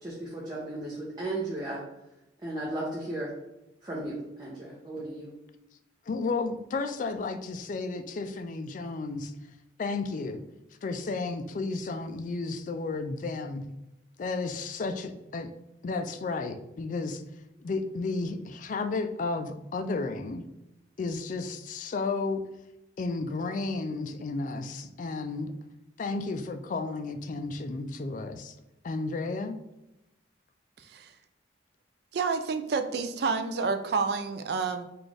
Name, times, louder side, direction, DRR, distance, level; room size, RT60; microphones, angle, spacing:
voice 1, 0.0-1.8 2.4-3.3 3.8-5.4, right 1 dB, 20° right, -5 dB, 0.7 m, -35 dB
voice 2, 6.1-9.3 9.8-10.4 10.8-13.7 14.2-15.5 15.8-17.2 17.6-20.4 21.0-22.5 23.0-25.5 26.0-28.5 28.8-29.6, left 3 dB, 45° left, 8 dB, 0.3 m, -32 dB
voice 3, 32.1-34.8, right 4 dB, 60° right, 9 dB, 0.3 m, -29 dB
4.0 x 2.4 x 3.3 m, 0.92 s
head